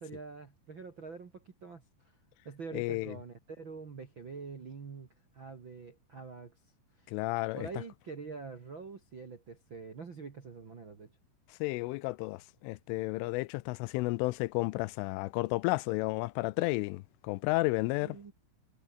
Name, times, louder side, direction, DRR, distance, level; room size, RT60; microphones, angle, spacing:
voice 1, 0.0-1.8 2.4-5.1 5.3-6.5 7.0-7.1 7.5-11.1 18.0-18.3, right 4 dB, 50° right, 1.4 m, -45 dB
voice 2, 2.7-3.2 7.1-7.7 11.6-18.2, left 22 dB, 90° left, 3.2 m, -32 dB
omnidirectional pair, 5.6 m